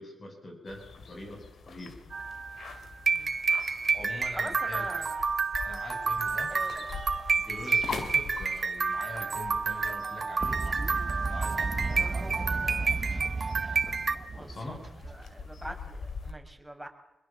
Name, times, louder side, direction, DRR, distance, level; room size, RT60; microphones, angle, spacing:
voice 1, 0.0-1.9 3.9-4.9 5.6-6.5 7.4-10.6 11.3-12.8 14.4-14.8, left 2 dB, 50° left, 4 dB, 7.9 m, -43 dB
sound 1, 0.7-16.3, left 5 dB, 70° left, 2.6 m, -44 dB
sound 2, 2.1-14.2, right 4 dB, 50° right, 1.3 m, -30 dB
voice 2, 4.3-5.3 6.5-7.0 12.0-13.0 14.4-16.9, right 1 dB, 5° right, 3 dB, 5.7 m, -43 dB
Fowl, 10.4-15.7, right 3 dB, 35° right, 1.1 m, -34 dB
25.0 x 21.5 x 7.6 m, 0.93 s
supercardioid pair, 45°, 0 cm